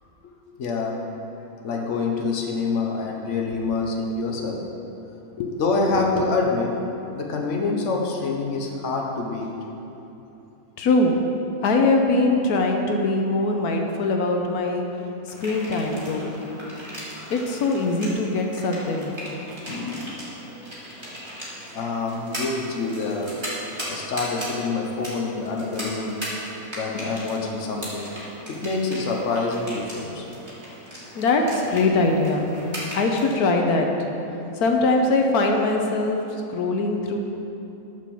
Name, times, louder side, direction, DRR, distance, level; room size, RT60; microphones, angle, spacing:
voice 1, 0.6-1.0 1.6-4.7 5.6-6.8 7.1-9.5 21.7-23.4 23.9-26.2 26.7-28.1 28.5-30.3, left 3 dB, 55° left, 0 dB, 1.3 m, -26 dB
voice 2, 10.8-11.2 11.6-14.8 15.3-16.3 17.3-19.2 31.2-32.5 32.9-33.9 34.5-37.2, left 2 dB, 85° left, 2 dB, 1.3 m, -22 dB
sound 1, 15.3-33.3, equal, 15° right, 2.7 m, -37 dB
11.0 x 5.2 x 7.0 m, 3.0 s
omnidirectional pair, 1.6 m